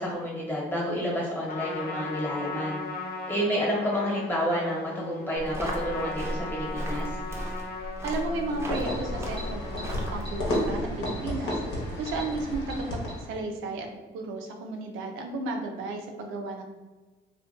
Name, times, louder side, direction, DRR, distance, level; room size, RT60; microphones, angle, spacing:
voice 1, 0.0-2.8 3.3-7.1, equal, 10° left, -4 dB, 0.9 m, -29 dB
Trumpet, 1.4-10.2, left 3 dB, 50° left, 0.4 m, -38 dB
sound 1, 5.4-10.9, equal, 15° right, 0.5 m, -35 dB
voice 2, 8.0-13.9 14.1-16.6, right 2 dB, 90° right, 3 dB, 0.4 m, -34 dB
sound 2, 8.5-13.4, left 1 dB, 70° left, 0.9 m, -32 dB
2.4 x 2.2 x 2.4 m, 1.2 s
cardioid pair, 90°, 20 cm